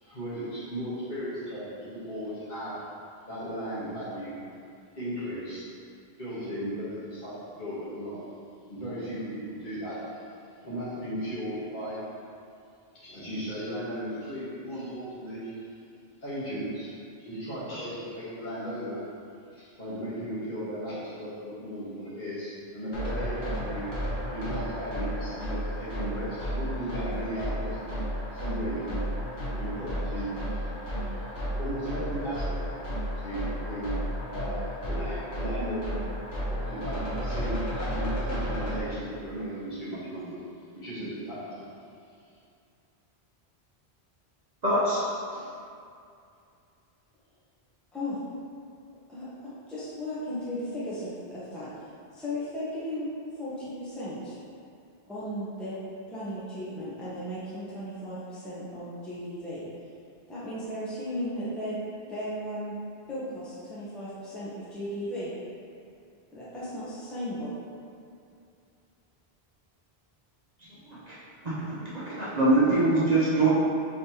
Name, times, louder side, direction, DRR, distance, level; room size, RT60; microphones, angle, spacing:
voice 1, 0.0-2.9 3.3-4.4 4.9-5.7 6.2-8.2 8.7-10.2 10.6-12.1 12.9-15.7 16.2-19.0 19.5-23.9 24.3-27.9 28.3-29.1 29.6-30.7 31.0-31.2 31.6-33.9 34.2-35.9 36.5-40.4 40.7-41.8, equal, 50° left, -11 dB, 1.6 m, -36 dB
sound 1, 22.9-38.8, equal, 80° left, 1.4 m, -33 dB
voice 2, 44.6-45.0 45.3-45.4 71.1-71.2 71.4-73.5, right 2 dB, 45° right, -9 dB, 0.9 m, -24 dB
voice 3, 49.1-53.1 53.3-54.4 55.1-55.8 56.1-59.7 60.3-61.8 62.1-62.8 63.1-65.3 66.3-67.5, equal, ahead, -10 dB, 0.8 m, -36 dB
5.1 x 3.2 x 2.9 m, 2.5 s
omnidirectional pair, 1.1 m